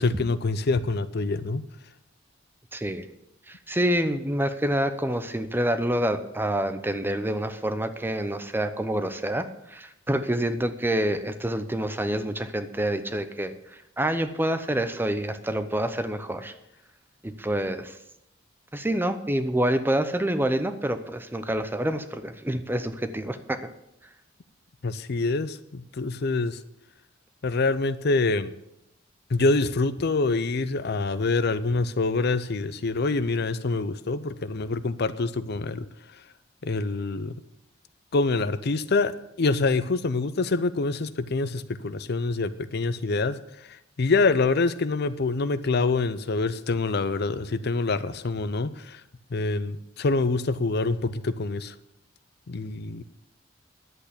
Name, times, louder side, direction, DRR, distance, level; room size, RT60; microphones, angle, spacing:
voice 1, 0.0-1.6 24.8-26.6 27.4-28.5 29.3-35.9 36.6-37.4 38.1-43.4 43.7-49.0 49.3-51.7 52.5-53.0, left 3 dB, 55° left, 14 dB, 0.6 m, -26 dB
voice 2, 2.7-3.1 3.5-13.5 14.0-16.5 17.2-18.0 18.7-23.7, right 1 dB, 10° right, 10 dB, 0.7 m, -27 dB
11.0 x 8.0 x 8.3 m, 0.83 s
head